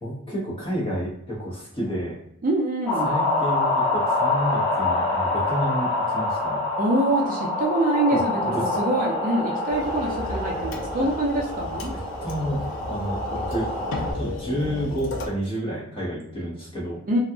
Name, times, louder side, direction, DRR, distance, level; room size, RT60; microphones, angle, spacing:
voice 1, 0.0-2.2 3.0-6.6 8.1-8.8 11.9-13.7 14.1-17.0, equal, 25° left, -6 dB, 1.0 m, -30 dB
voice 2, 2.4-3.2 6.8-11.9 17.1-17.2, right 1 dB, 40° right, -1 dB, 0.4 m, -25 dB
sound 1, 2.9-14.1, left 2 dB, 10° left, 1.4 m, -26 dB
sound 2, 9.7-15.3, left 1 dB, 70° left, 0.4 m, -34 dB
2.7 x 2.4 x 2.3 m, 0.73 s
head